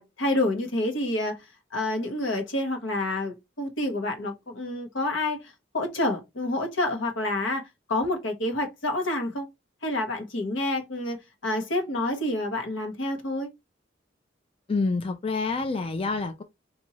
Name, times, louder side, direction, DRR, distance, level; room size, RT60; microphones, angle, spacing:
voice 1, 0.0-1.4 1.7-7.6 7.9-9.4 9.8-11.2 11.4-13.5, left 1 dB, 85° left, 1.1 m, -28 dB
voice 2, 14.7-16.4, left 3 dB, 30° left, 0.3 m, -27 dB
4.2 x 2.6 x 2.9 m
head